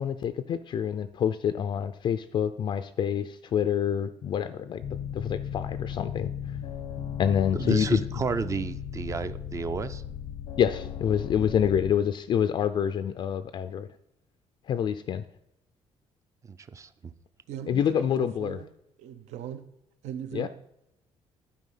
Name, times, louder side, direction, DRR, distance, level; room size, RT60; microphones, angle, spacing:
voice 1, 0.0-4.8 5.1-6.3 7.2-8.0 10.6-13.9 14.7-15.2 17.7-18.6 20.3-20.5, left 8 dB, 45° left, 0.4 m, -27 dB
sound 1, 4.8-11.9, left 9 dB, 90° left, 0.9 m, -36 dB
voice 2, 7.5-10.0 16.5-17.1, right 5 dB, 25° right, 0.4 m, -32 dB
voice 3, 17.5-18.7 19.0-19.6 20.0-20.5, right 9 dB, 80° right, 0.8 m, -39 dB
11.5 x 4.6 x 5.5 m
cardioid pair, 145°, 11 cm